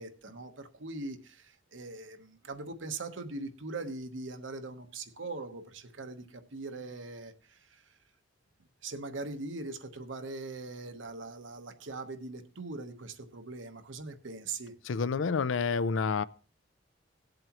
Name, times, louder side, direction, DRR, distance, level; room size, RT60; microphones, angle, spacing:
voice 1, 0.0-7.8 8.8-14.7, right 3 dB, 80° right, 1.1 m, -41 dB
voice 2, 14.9-16.2, left 5 dB, 85° left, 0.5 m, -29 dB
18.5 x 7.8 x 3.0 m
head